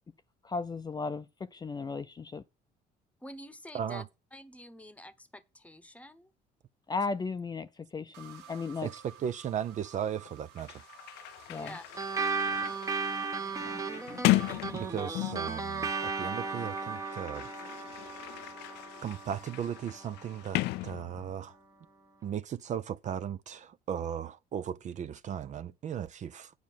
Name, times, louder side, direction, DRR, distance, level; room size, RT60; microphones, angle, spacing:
voice 1, 0.4-1.3 1.5-2.4 6.9-7.7 7.9-8.9 11.5-11.7 13.6-13.8, left 4 dB, 25° left, 0.6 m, -35 dB
voice 2, 3.2-4.0 4.3-6.3 11.5-11.8, left 1 dB, 10° left, 1.0 m, -48 dB
sound 1, 8.1-18.1, right 8 dB, 90° right, 1.5 m, -54 dB
voice 3, 8.8-10.8 14.7-17.5 19.0-21.6 22.2-26.5, right 9 dB, 45° right, 0.5 m, -36 dB
Sliding door, 10.2-10.3 10.6-15.6 16.5-21.5, left 18 dB, 85° left, 0.5 m, -35 dB
sound 2, 12.0-20.8, right 4 dB, 20° right, 0.9 m, -36 dB
9.5 x 5.1 x 7.4 m
cardioid pair, 110°, 17 cm